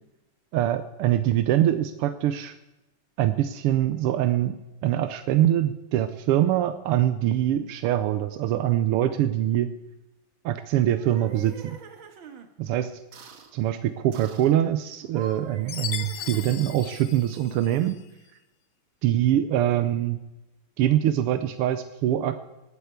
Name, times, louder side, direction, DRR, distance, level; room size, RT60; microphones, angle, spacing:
voice 1, 0.5-2.6 3.2-9.7 10.5-11.8 12.6-12.9 13.5-18.0 19.0-20.2 20.8-22.4, right 12 dB, 85° right, 10 dB, 1.7 m, -24 dB
sound 1, 10.8-12.5 13.1-13.5 14.1-14.6 15.0-16.7, right 5 dB, 65° right, 2.2 m, -44 dB
Chime, 15.7-18.0, left 10 dB, 80° left, 1.7 m, -37 dB
18.0 x 8.3 x 8.0 m, 1.0 s
omnidirectional pair, 2.4 m